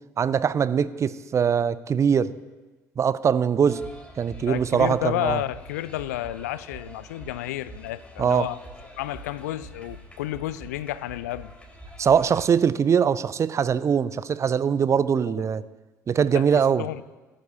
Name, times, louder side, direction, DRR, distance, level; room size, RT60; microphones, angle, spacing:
voice 1, 0.2-2.3 3.0-3.8 4.2-5.4 8.2-8.5 12.0-15.6 16.1-16.8, right 7 dB, 30° right, 17 dB, 0.5 m, -22 dB
sound 1, 3.7-12.5, right 1 dB, 10° left, 3.3 m, -45 dB
voice 2, 4.5-8.6 9.0-11.5 15.3-15.4 16.4-16.5 16.8-17.0, left 14 dB, 70° left, 18 dB, 0.4 m, -31 dB
19.0 x 11.5 x 2.8 m, 1.2 s
figure-of-eight pair, 55°, 9 cm